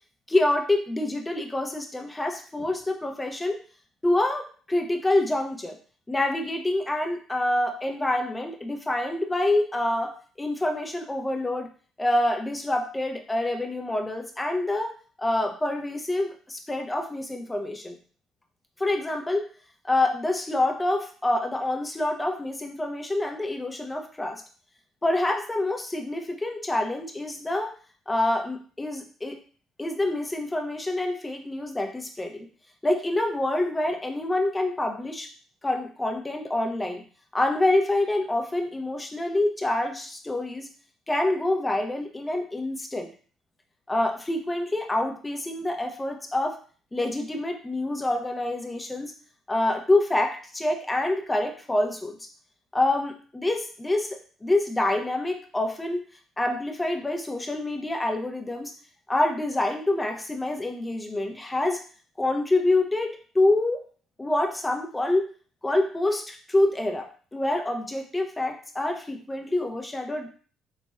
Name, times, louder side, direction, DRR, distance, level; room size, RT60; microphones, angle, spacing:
voice 1, 0.3-3.6 4.0-5.8 6.1-10.1 10.4-11.7 12.0-14.9 15.2-18.0 18.8-19.4 19.8-24.4 25.0-27.7 28.1-29.4 29.8-32.5 32.8-35.3 35.6-37.0 37.3-40.7 41.1-43.1 43.9-46.5 46.9-49.1 49.5-52.3 52.7-56.0 56.4-58.7 59.1-61.8 62.2-63.8 64.2-65.3 65.6-70.3, left 2 dB, 15° left, 3 dB, 0.7 m, -26 dB
4.0 x 3.2 x 2.2 m, 0.42 s
hypercardioid pair, 50°, 0 cm